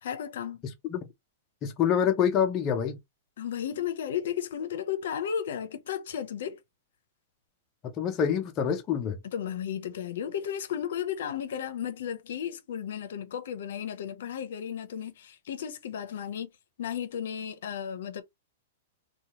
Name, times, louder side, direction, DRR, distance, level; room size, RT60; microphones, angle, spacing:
voice 1, 0.0-0.6 3.4-6.6 9.2-16.5 16.8-18.2, left 9 dB, 65° left, 0.6 m, -34 dB
voice 2, 1.6-3.0 8.0-9.2, left 8 dB, 20° left, 0.4 m, -26 dB
2.8 x 2.2 x 2.8 m
supercardioid pair, 170°, 0 cm